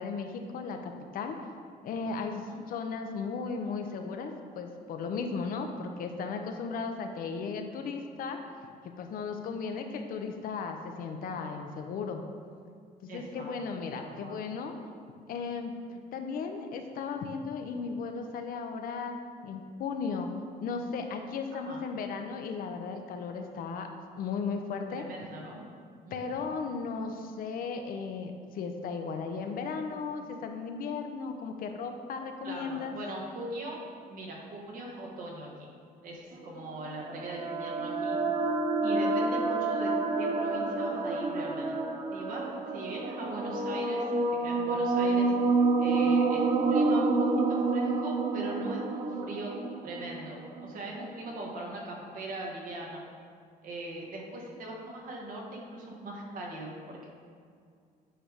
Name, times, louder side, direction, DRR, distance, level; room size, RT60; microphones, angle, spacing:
voice 1, 0.0-1.4 1.8-8.4 8.8-12.2 13.0-14.7 15.3-20.3 20.6-23.9 24.2-25.1 26.1-32.9, left 5 dB, 60° left, 5 dB, 0.7 m, -36 dB
voice 2, 13.1-13.5 13.9-14.4 21.6-21.8 24.9-25.7 26.0-26.5 32.4-33.8 34.1-35.7 36.0-38.2 38.8-41.8 42.1-45.3 45.8-49.5 49.8-53.0 53.6-57.1, right 1 dB, 60° right, -1 dB, 1.4 m, -40 dB
sound 1, 36.6-50.7, right 3 dB, 30° right, 0.5 m, -28 dB
8.7 x 3.4 x 5.0 m, 2.2 s
cardioid pair, 145°, 16 cm